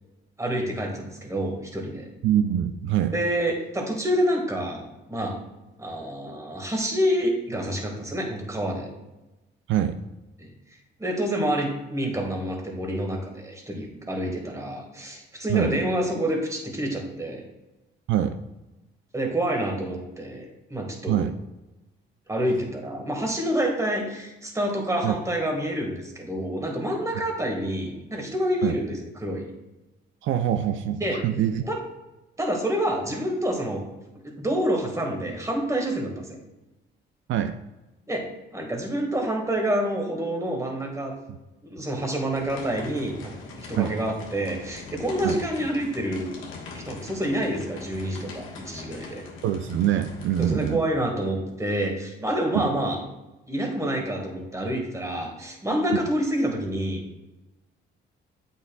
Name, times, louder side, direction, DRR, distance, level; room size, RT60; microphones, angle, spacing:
voice 1, 0.4-2.1 3.1-5.4 5.8-8.9 10.4-10.5 11.0-17.4 19.1-21.2 22.3-29.5 31.0-31.2 31.6-31.8 32.4-33.8 34.2-36.4 38.1-38.3 38.5-41.1 41.6-43.3 43.6-46.3 46.7-49.2 50.4-53.0 53.5-57.0, right 1 dB, 15° right, 1 dB, 1.6 m, -28 dB
voice 2, 2.2-3.2 9.7-10.0 15.5-15.8 18.1-18.4 21.1-21.3 25.0-25.1 28.6-28.8 30.2-31.6 37.3-37.6 43.8-43.9 45.2-45.4 49.4-50.8 52.5-52.7, right 10 dB, 75° right, 8 dB, 0.4 m, -24 dB
sound 1, 42.3-50.7, left 4 dB, 85° left, 1.3 m, -41 dB
8.1 x 5.6 x 2.2 m, 1.0 s
cardioid pair, 90°, 20 cm